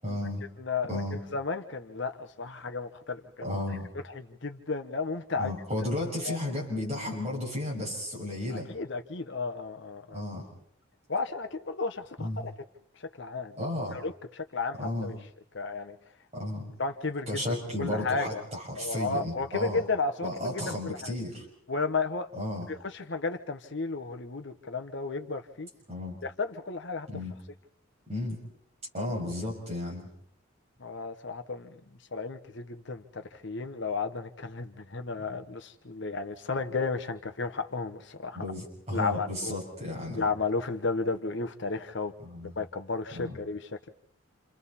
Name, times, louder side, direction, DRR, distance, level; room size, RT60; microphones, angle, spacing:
voice 1, 0.0-0.4 0.9-1.2 3.4-3.9 5.4-8.7 10.1-10.5 12.2-12.4 13.6-14.0 14.8-15.1 16.3-16.6 17.3-19.8 20.2-21.4 22.3-22.7 25.9-26.2 27.1-27.3 28.1-28.4 28.9-30.1 38.3-40.2 42.2-42.5 43.1-43.4, left 1 dB, 30° right, -3 dB, 6.4 m, -33 dB
voice 2, 0.6-1.0 1.3-3.5 4.1-5.5 6.2-6.4 8.5-10.2 11.1-12.5 13.0-13.6 13.9-15.2 15.5-16.0 16.8-18.4 18.8-21.1 21.7-22.3 22.7-25.7 26.2-27.1 30.8-31.8 32.1-38.5 38.9-39.6 40.1-42.1 42.6-43.9, left 4 dB, 55° left, 8 dB, 1.1 m, -33 dB
28.5 x 28.0 x 4.2 m, 0.65 s
head